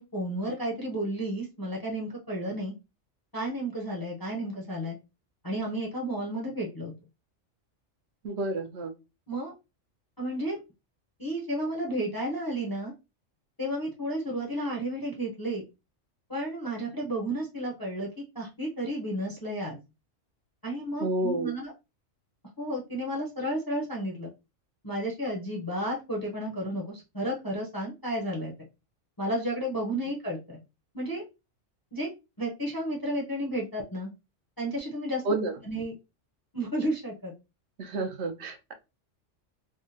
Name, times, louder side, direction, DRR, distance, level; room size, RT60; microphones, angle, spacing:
voice 1, 0.0-2.7 3.3-5.0 5.4-6.9 9.3-9.5 10.2-10.6 11.2-12.9 13.6-15.6 16.3-18.1 18.3-19.8 20.6-21.7 22.6-24.3 24.8-28.5 29.2-30.6 30.9-31.2 31.9-32.1 32.4-34.1 34.6-35.2 35.6-35.9 36.5-37.3, right 1 dB, 25° left, -3 dB, 0.6 m, -32 dB
voice 2, 8.2-8.9 21.0-21.5 35.3-35.5 37.8-38.7, right 2 dB, 65° right, 6 dB, 0.9 m, -30 dB
3.6 x 2.1 x 2.7 m, 0.26 s
omnidirectional pair, 1.3 m